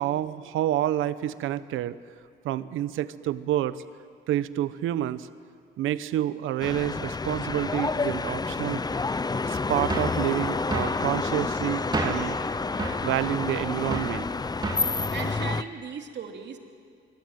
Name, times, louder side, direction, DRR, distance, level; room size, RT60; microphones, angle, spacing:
voice 1, 0.0-2.0 2.4-3.8 4.3-5.3 5.8-8.8 9.5-12.4 13.0-14.3, right 12 dB, 85° right, 15 dB, 0.9 m, -28 dB
sound 1, 6.6-15.6, left 4 dB, 20° left, 0.7 m, -29 dB
sound 2, 9.9-10.2 10.7-11.0 11.9-12.3 12.8-13.1 13.9-14.2 14.6-14.9, right 3 dB, 20° right, 2.9 m, -30 dB
voice 2, 15.1-16.6, right 6 dB, 60° right, 4 dB, 2.9 m, -37 dB
24.5 x 24.0 x 9.3 m, 2.3 s
cardioid pair, 90°, 20 cm